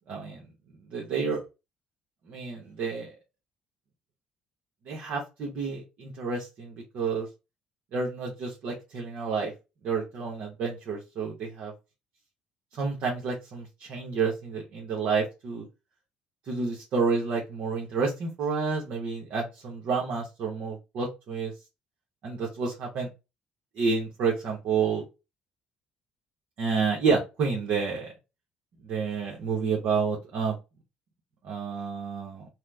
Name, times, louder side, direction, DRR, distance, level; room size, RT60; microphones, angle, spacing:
voice 1, 0.1-0.4 0.9-1.4 2.3-3.1 4.9-7.3 7.9-9.5 9.8-11.7 12.8-15.6 16.5-21.5 22.2-23.1 23.8-25.0 26.6-28.1 28.8-30.5 31.4-32.5, right 5 dB, 65° right, -2 dB, 0.9 m, -29 dB
3.0 x 2.0 x 3.3 m, 0.26 s
cardioid pair, 95°, 3 cm